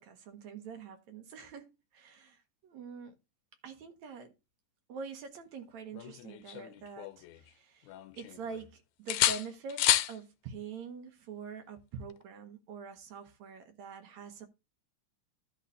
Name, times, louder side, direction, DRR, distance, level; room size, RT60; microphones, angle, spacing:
voice 1, 0.0-3.2 3.6-4.3 4.9-14.5, right 5 dB, 70° right, 2.4 m, -45 dB
sound 1, 6.0-7.5 7.9-8.7 9.1-10.2 12.0-12.2, left 13 dB, 80° left, 2.1 m, -31 dB
11.0 x 3.8 x 6.6 m
omnidirectional pair, 3.5 m